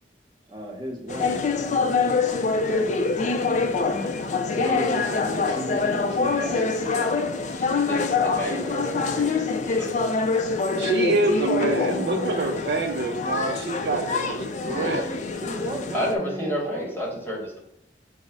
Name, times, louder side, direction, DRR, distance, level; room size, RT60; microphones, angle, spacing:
voice 1, 0.5-3.0 3.7-4.2 4.5-7.6 7.9-9.9 11.6-12.7 14.1-17.3, equal, 25° right, 0 dB, 0.9 m, -36 dB
sound 1, 1.1-16.1, left 4 dB, 40° left, 0.4 m, -25 dB
voice 2, 7.5-10.0 14.7-15.2 15.9-17.6, equal, 10° left, -3 dB, 1.0 m, -31 dB
voice 3, 10.8-14.3 14.6-15.0, right 2 dB, 65° right, 4 dB, 0.5 m, -26 dB
5.3 x 2.0 x 4.7 m, 0.78 s
head